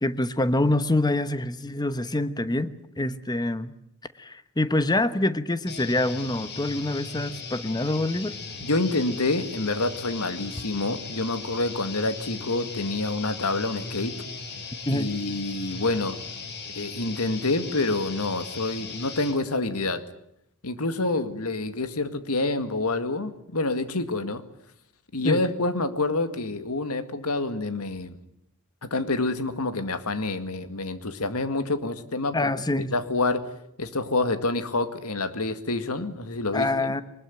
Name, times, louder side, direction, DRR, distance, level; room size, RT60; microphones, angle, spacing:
voice 1, 0.0-3.7 4.2-8.3 14.9-15.1 25.2-25.4 32.3-32.9 36.5-37.0, left 2 dB, 20° left, 12 dB, 1.1 m, -26 dB
sound 1, 5.7-19.4, left 4 dB, 50° left, 5.1 m, -38 dB
voice 2, 8.6-14.2 14.9-16.2 16.7-20.0 20.6-24.4 25.1-28.2 28.8-32.5 32.8-36.9, left 2 dB, 90° left, 10 dB, 2.0 m, -27 dB
23.0 x 20.5 x 9.2 m, 0.76 s
head